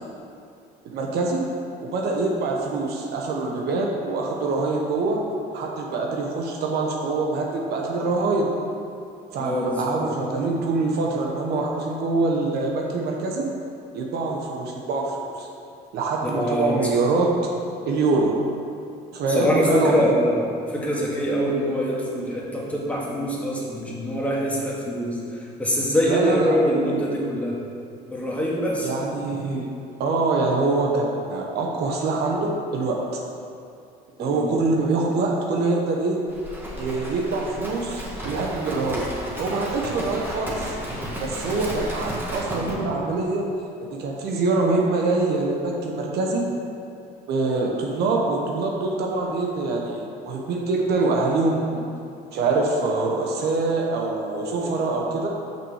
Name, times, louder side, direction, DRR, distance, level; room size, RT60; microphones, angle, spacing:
voice 1, 0.8-1.4 1.9-5.2 5.5-8.5 9.3-13.5 13.9-15.5 15.9-17.3 17.9-18.3 19.1-20.1 26.1-26.6 28.8-29.7 30.0-33.0 34.2-36.2 36.8-39.1 39.4-40.7 41.2-43.4 43.9-46.4 47.3-51.6 52.3-55.3, right 3 dB, 75° right, 0 dB, 1.2 m, -24 dB
voice 2, 9.4-10.0 16.2-16.7 19.3-27.6 28.1-28.9 34.2-34.5, equal, 10° left, -5 dB, 2.0 m, -24 dB
Livestock farm animals working animals, 36.3-42.8, equal, 10° right, 1.8 m, -33 dB
6.2 x 5.9 x 6.5 m, 2.5 s
cardioid pair, 110°, 17 cm